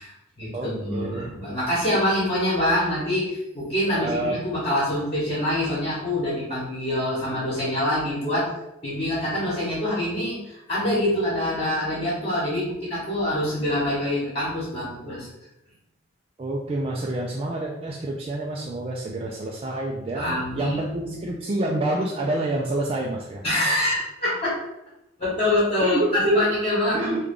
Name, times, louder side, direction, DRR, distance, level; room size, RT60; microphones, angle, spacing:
voice 1, 0.0-8.5 8.8-15.3 20.1-21.3 23.4-24.5 25.2-27.3, left 1 dB, 30° left, -8 dB, 1.2 m, -25 dB
voice 2, 0.5-1.3 3.9-4.4 16.4-23.4 25.8-26.5 26.9-27.2, right 1 dB, 30° right, -2 dB, 0.3 m, -28 dB
3.3 x 2.3 x 3.7 m, 0.88 s
head